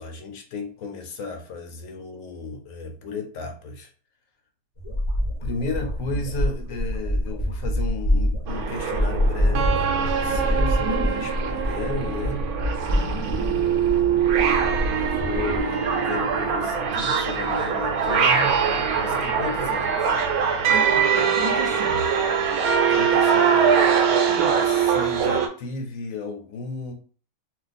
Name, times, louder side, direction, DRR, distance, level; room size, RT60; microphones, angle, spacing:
voice 1, 0.0-3.9 5.4-12.4 12.9-14.1 14.9-18.6 19.0-20.2 22.7-26.9, left 3 dB, 70° left, 1.0 m, -34 dB
sound 1, 4.8-15.6, equal, 30° left, 0.7 m, -26 dB
sound 2, 8.5-25.5, right 7 dB, 90° right, 1.1 m, -22 dB
voice 2, 10.8-11.3 12.9-13.2 20.7-22.0 24.3-24.6, right 1 dB, 40° right, 0.5 m, -33 dB
2.4 x 2.4 x 4.0 m
omnidirectional pair, 1.5 m